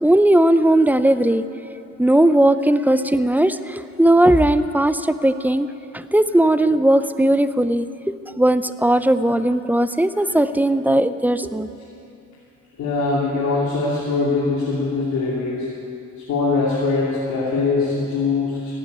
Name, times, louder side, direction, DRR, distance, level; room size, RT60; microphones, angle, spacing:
voice 1, 0.0-1.4 2.0-11.7, right 1 dB, 5° right, 12 dB, 0.6 m, -18 dB
voice 2, 12.8-15.7 16.3-18.7, left 3 dB, 75° left, -6 dB, 2.9 m, -22 dB
15.0 x 9.6 x 9.4 m, 2.7 s
cardioid pair, 90°, 30 cm